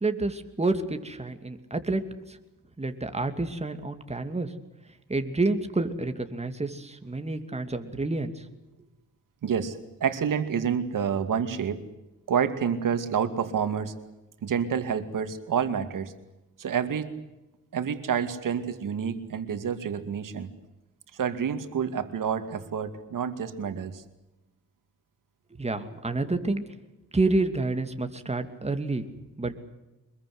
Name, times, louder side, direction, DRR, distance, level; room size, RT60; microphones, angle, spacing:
voice 1, 0.0-2.0 2.8-4.5 5.1-8.3 25.6-26.6 27.1-29.0 29.4-29.5, right 2 dB, 20° right, 7 dB, 2.7 m, -28 dB
voice 2, 9.4-11.8 12.3-13.9 14.4-16.1 16.6-17.1 17.7-20.5 21.1-24.0, right 7 dB, 80° right, 9 dB, 2.5 m, -28 dB
25.0 x 21.5 x 7.9 m, 1.0 s
cardioid pair, 90°, 32 cm